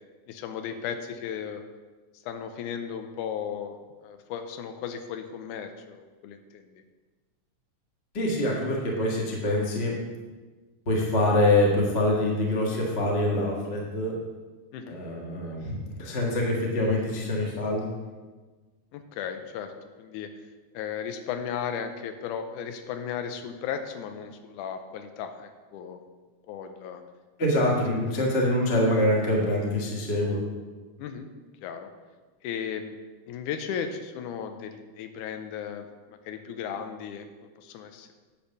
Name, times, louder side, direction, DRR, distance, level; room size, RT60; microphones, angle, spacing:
voice 1, 0.3-1.6 2.2-3.8 4.0-6.8 14.7-15.0 18.9-19.7 20.0-20.3 20.7-26.0 26.5-27.0 31.0-31.3 31.6-31.9 32.4-38.1, left 7 dB, 85° left, 7 dB, 2.1 m, -35 dB
voice 2, 8.1-9.9 10.9-14.2 14.9-17.9 27.4-30.4, left 1 dB, 35° left, -2 dB, 1.0 m, -25 dB
10.0 x 4.5 x 6.8 m, 1.3 s
omnidirectional pair, 3.6 m